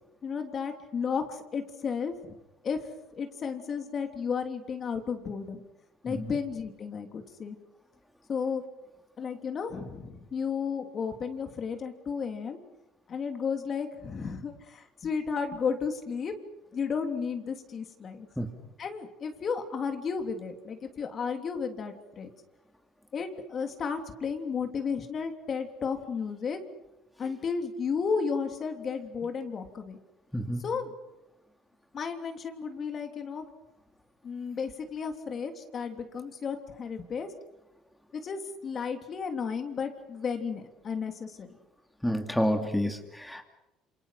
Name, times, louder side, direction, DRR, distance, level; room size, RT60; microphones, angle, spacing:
voice 1, 0.2-2.3 2.6-2.8 3.1-5.6 6.0-7.5 8.3-8.6 9.2-12.6 13.1-16.3 16.7-18.3 18.8-22.3 23.1-26.6 27.2-30.0 30.6-30.9 31.9-33.5 34.2-37.3 38.1-41.5, left 6 dB, 40° left, 6 dB, 3.2 m, -33 dB
voice 2, 30.3-30.6 42.0-43.4, equal, 5° left, 4 dB, 2.7 m, -28 dB
28.0 x 27.5 x 6.0 m, 0.97 s
cardioid pair, 110°, 0 cm